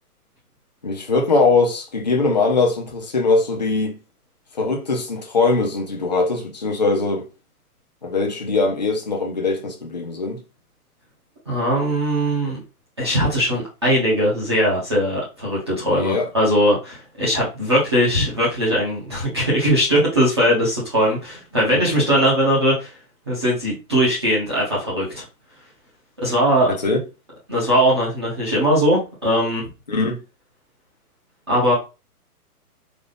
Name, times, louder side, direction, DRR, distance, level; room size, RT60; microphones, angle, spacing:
voice 1, 0.8-4.0 4.6-7.2 8.0-10.4 15.8-16.3 21.9-22.0 26.7-27.0 29.9-30.2, left 3 dB, 30° left, 0.4 m, -21 dB
voice 2, 11.5-12.6 13.0-22.9 23.3-25.2 26.2-26.7 27.5-29.6 31.5-31.7, equal, 20° right, 0.6 m, -20 dB
3.9 x 2.3 x 3.2 m
hypercardioid pair, 170°, 46 cm